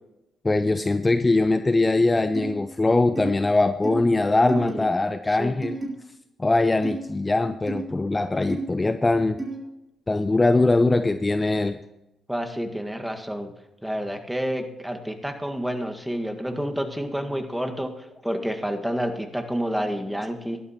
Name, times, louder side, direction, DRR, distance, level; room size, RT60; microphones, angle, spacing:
voice 1, 0.4-5.8 6.4-9.4 10.1-11.8, left 2 dB, 25° left, 11 dB, 0.6 m, -21 dB
sound 1, 2.3-2.5 3.1-3.3 3.8-4.0 4.5-4.7 5.6-5.9 6.8-7.0 7.7-7.8 8.5-8.6 9.4-9.6, right 3 dB, 20° right, 4.3 m, -31 dB
voice 2, 4.4-4.9 5.3-5.6 12.3-13.5 13.8-20.6, equal, 5° right, 5 dB, 1.8 m, -29 dB
17.5 x 12.0 x 3.0 m, 0.93 s
hypercardioid pair, 45°, 0 cm